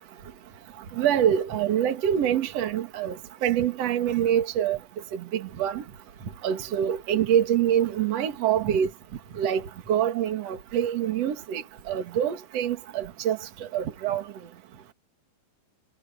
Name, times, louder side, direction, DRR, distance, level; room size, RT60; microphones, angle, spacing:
voice 1, 0.9-4.8 5.1-5.8 6.4-8.9 9.4-13.4 13.7-14.2, right 10 dB, 45° right, 2.4 m, -25 dB
omnidirectional pair, 5.1 m